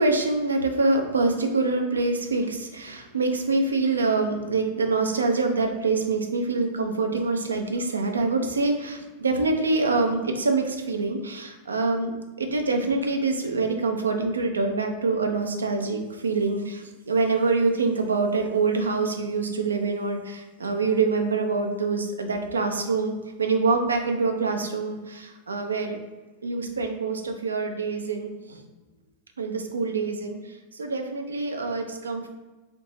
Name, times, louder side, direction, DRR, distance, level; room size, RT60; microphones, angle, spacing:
voice 1, 0.0-26.0 26.4-28.6 29.4-32.3, right 3 dB, 75° right, 4 dB, 0.7 m, -25 dB
4.4 x 3.6 x 3.1 m, 1.2 s
figure-of-eight pair, 90°, 0 cm